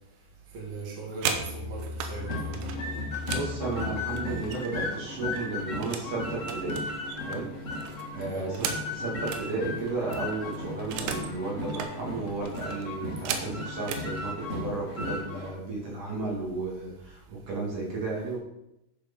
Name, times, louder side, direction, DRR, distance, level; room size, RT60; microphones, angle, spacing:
voice 1, 0.5-2.7 8.3-8.5, right 4 dB, 35° right, -4 dB, 2.4 m, -39 dB
sound 1, 0.9-2.1 2.5-4.9 5.2-6.1 6.4-9.5 9.8-9.9 10.1-11.3 11.6-11.9 12.5-14.1 14.9-15.1 15.4-15.7 16.0-16.6, right 7 dB, 85° right, 3.1 m, -36 dB
Musical instrument, 1.1-4.6, left 3 dB, 20° left, 1.5 m, -39 dB
sound 2, 2.2-15.5, left 2 dB, 70° left, 0.7 m, -36 dB
voice 2, 3.2-6.9 7.2-7.5 7.9-18.4, right 3 dB, 55° right, -4 dB, 3.5 m, -34 dB
11.0 x 5.0 x 5.4 m, 0.87 s
omnidirectional pair, 4.7 m